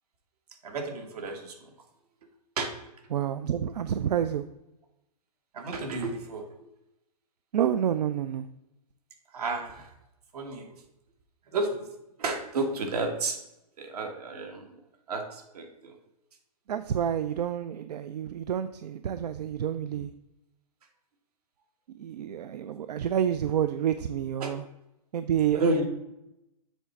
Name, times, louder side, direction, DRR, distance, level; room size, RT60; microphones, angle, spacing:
voice 1, 0.6-1.7 2.6-2.7 5.5-6.7 9.3-9.9 10.3-10.7 11.5-11.8 12.2-13.4 13.8-14.7 15.1-16.0 24.4-24.5 25.5-25.8, right 3 dB, 70° right, 4 dB, 1.5 m, -31 dB
voice 2, 3.1-4.5 7.5-8.5 16.7-20.1 21.9-24.6 25.1-25.6, right 9 dB, 90° right, 11 dB, 0.4 m, -29 dB
7.3 x 3.3 x 5.7 m, 0.90 s
hypercardioid pair, 160°, 20 cm